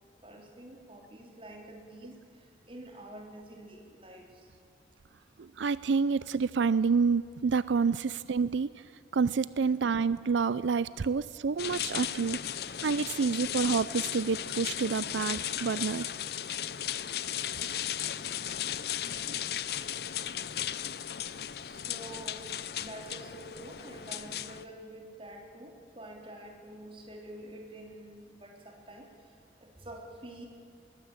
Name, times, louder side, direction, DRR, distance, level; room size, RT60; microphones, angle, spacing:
voice 1, 0.2-4.5 21.7-22.5 22.8-29.3 29.6-30.5, right 1 dB, 30° right, 2 dB, 3.3 m, -47 dB
voice 2, 5.4-8.7 9.1-12.4 12.8-16.1, right 5 dB, 90° right, 17 dB, 0.5 m, -28 dB
sound 1, 11.6-24.6, left 10 dB, 60° left, 0.7 m, -36 dB
21.0 x 19.0 x 9.1 m, 2.5 s
head